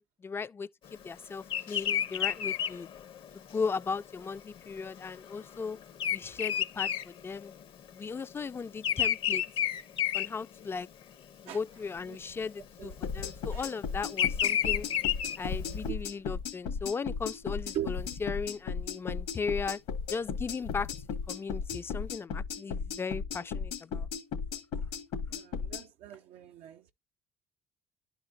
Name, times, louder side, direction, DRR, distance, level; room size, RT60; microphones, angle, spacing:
voice 1, 0.0-2.9 3.3-5.8 6.1-7.5 7.9-9.4 10.1-10.9 11.4-14.9 15.4-19.8 20.1-20.9 21.3-24.1, left 5 dB, 20° left, 0.4 m, -37 dB
Bird vocalization bird call bird song, 1.5-7.9 8.1-11.0 11.5-11.9 12.8-15.8, left 10 dB, 55° left, 0.7 m, -31 dB
sound 1, 11.7-22.2, left 5 dB, 75° left, 1.1 m, -48 dB
sound 2, 13.0-25.8, left 6 dB, 90° left, 2.0 m, -35 dB
voice 2, 25.3-26.9, right 11 dB, 75° right, 0.6 m, -40 dB
11.5 x 4.1 x 2.6 m
cardioid pair, 115°, 11 cm